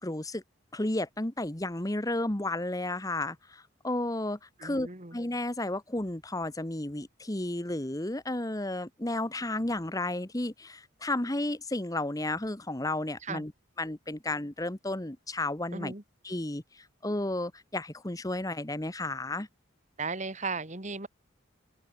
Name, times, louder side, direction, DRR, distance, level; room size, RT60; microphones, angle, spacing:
voice 1, 0.0-0.4 0.7-13.5 13.8-15.9 16.2-19.5, left 2 dB, 15° left, 1.1 m, -33 dB
voice 2, 4.6-5.2 13.2-13.4 15.7-16.0 20.0-21.1, right 4 dB, 35° right, 2.2 m, -36 dB
open air
head